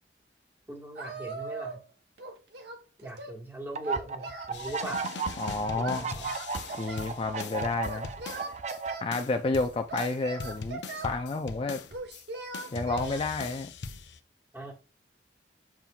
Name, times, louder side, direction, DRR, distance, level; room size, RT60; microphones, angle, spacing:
voice 1, 0.7-1.8 3.0-5.1 5.6-6.3 14.5-14.7, right 1 dB, 15° right, 1.5 m, -40 dB
Singing, 1.0-1.9 2.2-3.4 3.8-5.1 5.8-7.1 7.8-9.1 9.9-11.2 11.9-13.2, right 3 dB, 65° right, 1.1 m, -40 dB
sound 1, 3.8-8.9, right 5 dB, 40° right, 0.5 m, -35 dB
sound 2, 4.5-8.8 9.1-12.2 12.5-14.2, left 4 dB, 85° left, 0.6 m, -41 dB
voice 2, 5.4-6.0 6.8-8.1 9.0-11.8 12.7-13.7, left 3 dB, 30° left, 0.4 m, -30 dB
7.2 x 5.8 x 2.3 m
head